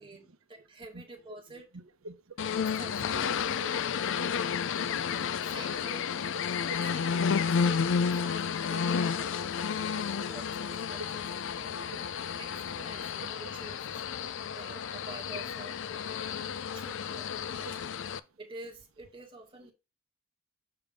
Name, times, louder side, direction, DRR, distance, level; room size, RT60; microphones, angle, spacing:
voice 1, 0.0-1.7 2.8-3.7 5.4-6.4 6.8-9.4 9.7-9.8 10.2-12.1 12.4-14.0 14.5-17.7 18.4-19.7, right 2 dB, 25° right, 1.7 m, -49 dB
voice 2, 1.5-3.7 4.0-5.3 6.2-6.3 6.7-7.2 8.7-8.8 9.9-10.4 11.6-11.8 12.3-12.4 12.7-12.8 17.6-17.7 19.6-19.7, right 4 dB, 75° right, 0.8 m, -49 dB
sound 1, 2.4-18.2, left 6 dB, 60° left, 0.4 m, -31 dB
6.8 x 3.6 x 5.1 m
head